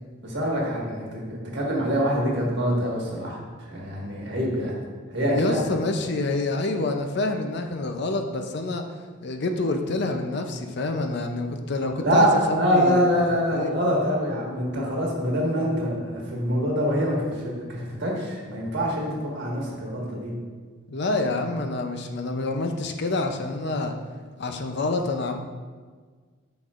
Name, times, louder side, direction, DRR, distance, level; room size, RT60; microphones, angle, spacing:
voice 1, 0.2-4.8 5.1-5.6 12.0-20.3, equal, 55° right, -3 dB, 1.6 m, -25 dB
voice 2, 5.3-8.8 9.2-13.0 13.5-13.7 20.9-24.0 24.4-25.4, left 2 dB, 55° left, 5 dB, 0.5 m, -27 dB
8.7 x 6.0 x 2.5 m, 1.5 s
head